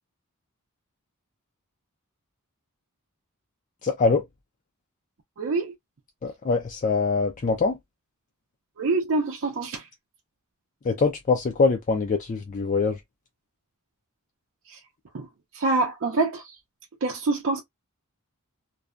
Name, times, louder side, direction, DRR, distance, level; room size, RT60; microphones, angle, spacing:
voice 1, 3.8-4.2 6.2-7.8 10.9-12.9, left 4 dB, 35° left, 0.4 m, -23 dB
voice 2, 5.4-5.7 8.8-9.8 14.7-14.8 15.1-15.3 15.5-16.5 17.0-17.6, right 3 dB, 60° right, 0.5 m, -25 dB
2.5 x 2.2 x 2.4 m
head